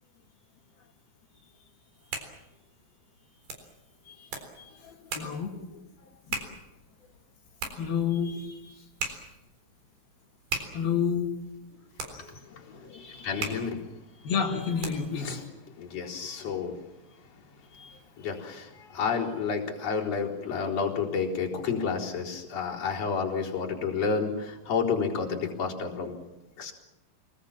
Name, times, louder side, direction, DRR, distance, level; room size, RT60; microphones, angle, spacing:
sound 1, 1.8-15.3, right 4 dB, 85° right, 5.7 m, -41 dB
voice 1, 4.6-5.6 6.3-6.4 7.8-8.7 9.0-9.2 10.7-11.3 12.2-13.0 14.2-15.4 17.7-18.0, left 7 dB, 80° left, 0 dB, 4.3 m, -31 dB
voice 2, 12.9-13.8 15.2-15.4 15.8-16.8 18.2-26.1 26.6-26.7, left 5 dB, 45° left, -3 dB, 5.2 m, -30 dB
27.5 x 21.0 x 7.4 m, 0.98 s
omnidirectional pair, 4.2 m